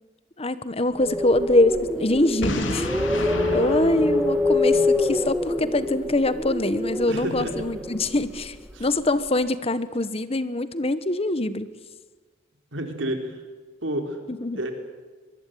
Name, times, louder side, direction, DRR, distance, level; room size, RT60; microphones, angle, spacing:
voice 1, 0.4-2.9 3.2-8.5 8.8-11.7 14.3-14.6, left 2 dB, 30° left, 14 dB, 1.2 m, -24 dB
sound 1, 0.8-8.9, left 2 dB, 5° right, 1.8 m, -26 dB
Boom, 2.4-5.3, left 1 dB, 85° left, 3.4 m, -32 dB
voice 2, 3.3-4.1 7.1-7.8 8.7-8.9 12.7-13.2 13.8-14.2 14.5-14.7, right 1 dB, 85° right, 5 dB, 4.0 m, -30 dB
23.5 x 23.0 x 9.4 m, 1.3 s
head